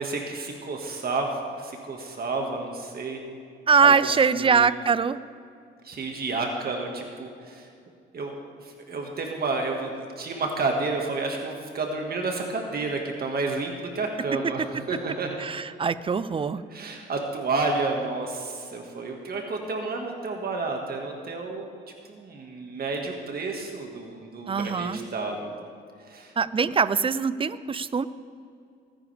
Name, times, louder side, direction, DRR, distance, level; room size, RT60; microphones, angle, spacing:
voice 1, 0.0-3.2 3.8-3.9 4.4-4.7 5.8-7.7 8.1-8.3 8.6-15.4 16.7-21.7 22.1-25.5 26.1-26.3, right 3 dB, 50° right, 2 dB, 1.8 m, -30 dB
voice 2, 3.7-5.2 15.4-16.6 24.5-25.0 26.4-28.1, right 5 dB, 25° right, 16 dB, 0.5 m, -22 dB
20.0 x 9.9 x 3.4 m, 2.4 s
cardioid pair, 90°, 20 cm